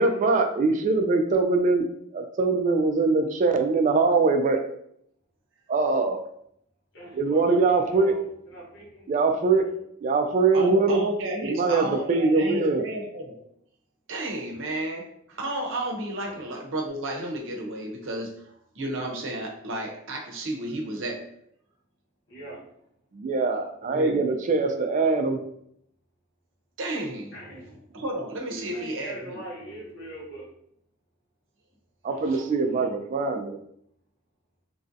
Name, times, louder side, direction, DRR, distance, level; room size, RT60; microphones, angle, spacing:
voice 1, 0.0-4.6 5.7-6.2 7.1-8.2 9.1-9.7 10.0-11.0 11.4-12.8 23.1-25.4 32.0-33.6, right 3 dB, 40° right, 6 dB, 0.3 m, -23 dB
voice 2, 6.9-9.0 9.4-9.7 14.5-14.6 16.2-16.4 22.3-22.6 27.3-27.8 28.5-30.5 32.0-32.9, right 1 dB, 60° left, -6 dB, 1.5 m, -42 dB
voice 3, 10.5-13.4 14.1-21.3 23.8-24.2 26.8-27.3 27.9-29.4 32.3-32.4, right 1 dB, 65° right, 1 dB, 0.7 m, -32 dB
3.1 x 2.6 x 2.5 m, 0.70 s
head